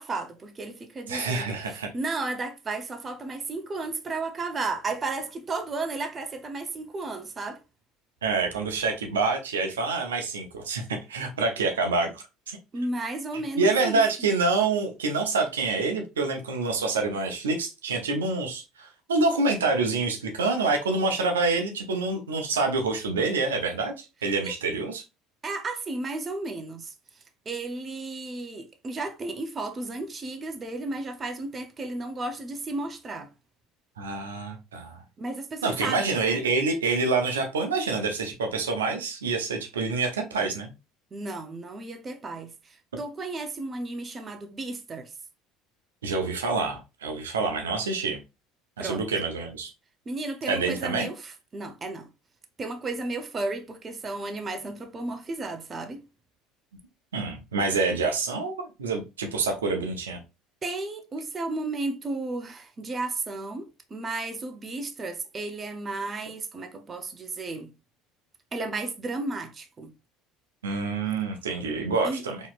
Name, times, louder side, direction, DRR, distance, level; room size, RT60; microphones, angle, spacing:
voice 1, 0.0-7.6 12.7-14.0 24.4-24.5 25.4-26.9 27.5-33.3 35.2-36.5 41.1-45.1 48.8-49.0 50.1-52.1 52.6-56.0 60.6-67.7 68.5-69.9 72.0-72.2, right 3 dB, 30° right, 0.7 m, -33 dB
voice 2, 1.1-1.9 8.2-12.6 13.6-25.0 34.0-35.0 35.6-40.7 46.0-48.2 48.8-49.7 50.5-51.1 57.1-60.2 70.6-72.4, right 3 dB, 85° right, 0.7 m, -27 dB
4.0 x 3.0 x 2.4 m
hypercardioid pair, 65°, 0 cm